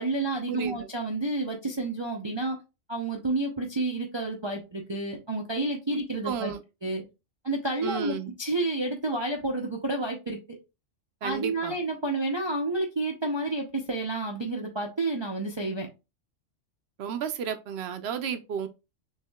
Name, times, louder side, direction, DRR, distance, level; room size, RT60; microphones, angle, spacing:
voice 1, 0.0-2.6 2.9-6.5 6.8-7.0 7.4-10.4 11.2-15.9, right 2 dB, 35° right, 0.4 m, -30 dB
voice 2, 6.2-6.6 7.8-8.3 11.2-11.8 17.0-18.7, right 7 dB, 60° right, 0.8 m, -32 dB
6.4 x 2.7 x 2.2 m
omnidirectional pair, 1.3 m